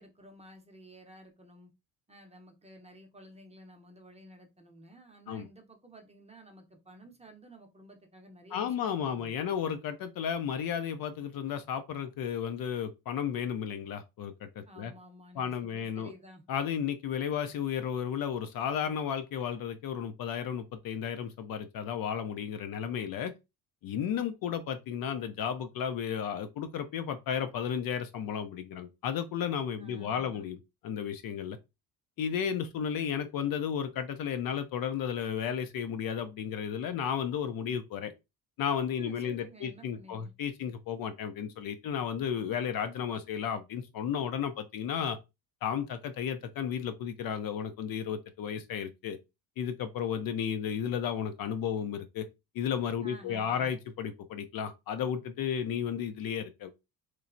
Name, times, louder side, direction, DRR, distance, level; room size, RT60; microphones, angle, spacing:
voice 1, 0.0-1.7 2.1-9.4 14.7-16.4 29.8-30.4 39.0-40.3 53.0-53.7, right 1 dB, 15° right, 0.7 m, -53 dB
voice 2, 8.5-14.9 15.4-16.1 16.5-23.3 23.8-30.6 30.8-31.6 32.2-38.1 38.6-45.2 45.6-49.2 49.6-52.3 52.5-56.7, left 8 dB, 55° left, 0.5 m, -33 dB
3.0 x 2.0 x 2.5 m
supercardioid pair, 75°, 44 cm